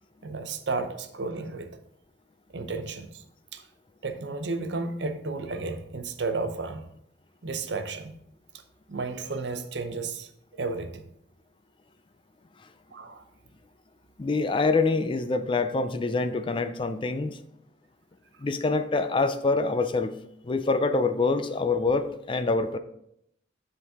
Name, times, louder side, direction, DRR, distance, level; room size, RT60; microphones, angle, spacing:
voice 1, 0.2-1.7 2.5-3.2 3.5-3.6 4.0-6.9 7.4-8.2 8.9-10.3 10.6-11.0 12.9-13.2, right 3 dB, 70° right, 8 dB, 0.7 m, -32 dB
voice 2, 14.2-17.4 18.4-20.2 20.4-22.8, left 3 dB, 25° left, 10 dB, 0.4 m, -25 dB
9.5 x 3.9 x 3.6 m, 0.74 s
head